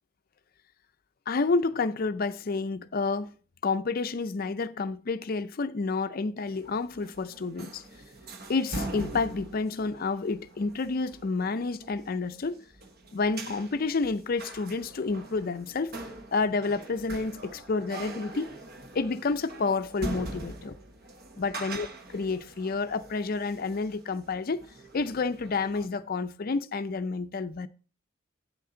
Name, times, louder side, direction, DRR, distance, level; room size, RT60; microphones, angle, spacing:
voice 1, 1.3-3.3 3.6-7.8 8.5-12.6 13.1-16.0 16.3-18.6 18.9-20.8 21.4-24.7 24.9-27.7, left 4 dB, 45° left, 0.4 m, -29 dB
sound 1, 6.5-25.9, right 2 dB, 45° right, 1.0 m, -42 dB
8.4 x 6.8 x 3.8 m
head